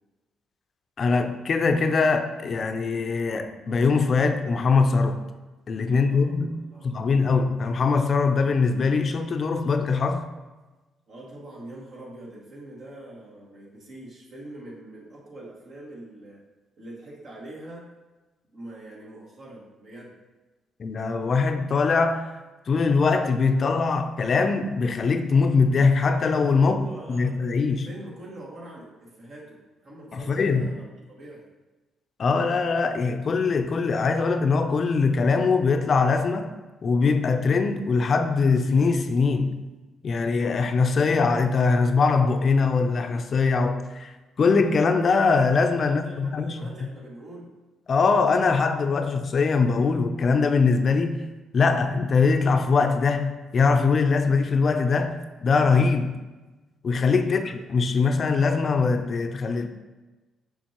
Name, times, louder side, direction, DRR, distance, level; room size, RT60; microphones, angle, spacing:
voice 1, 1.0-5.3 5.7-6.6 6.8-10.3 20.8-22.4 22.7-26.8 27.1-27.9 30.1-30.7 32.2-36.5 36.8-39.6 40.0-46.6 47.9-51.2 51.5-56.2 56.8-59.7, left 4 dB, 45° left, 0.5 m, -22 dB
voice 2, 5.9-7.1 11.1-16.4 16.8-17.9 18.5-20.2 26.6-31.5 45.8-47.6 57.2-57.6, right 1 dB, 60° right, 2.2 m, -43 dB
7.0 x 5.5 x 3.0 m
cardioid pair, 90°, 0 cm